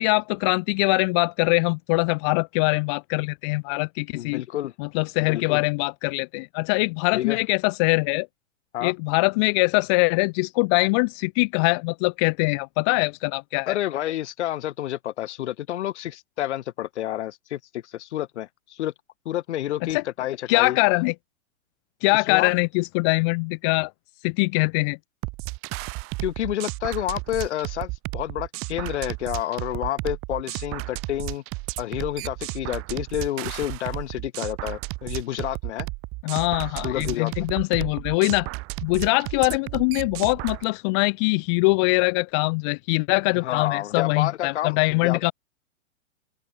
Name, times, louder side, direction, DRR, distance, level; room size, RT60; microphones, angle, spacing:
voice 1, 0.0-4.4 4.8-8.3 8.8-13.8 19.9-20.0 20.5-21.1 22.0-23.9 24.2-25.0 36.2-38.5 38.8-45.3, left 31 dB, 20° left, 0.5 m, -23 dB
voice 2, 4.1-4.7 5.2-5.6 7.1-7.4 8.7-8.9 13.7-18.9 19.2-20.8 22.1-22.5 26.2-31.4 31.8-35.9 36.8-37.5 43.4-45.2, left 13 dB, 55° left, 1.6 m, -29 dB
sound 1, 25.2-40.6, right 26 dB, 35° right, 4.4 m, -33 dB
open air
hypercardioid pair, 130°, 40 cm